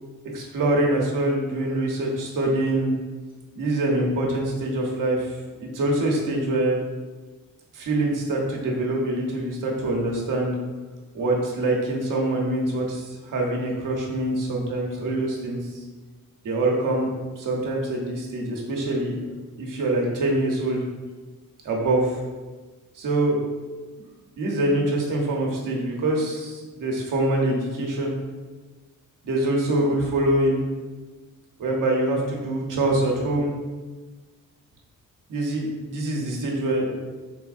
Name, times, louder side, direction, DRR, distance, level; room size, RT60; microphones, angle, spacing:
voice 1, 0.3-2.9 3.6-6.8 7.7-10.6 11.1-15.8 16.4-19.2 19.6-20.8 21.6-22.2 22.9-23.4 24.4-28.2 29.2-30.6 31.6-33.5 35.3-37.0, right 1 dB, 80° right, -1 dB, 0.9 m, -24 dB
4.3 x 3.5 x 2.4 m, 1.3 s
wide cardioid pair, 135°, 31 cm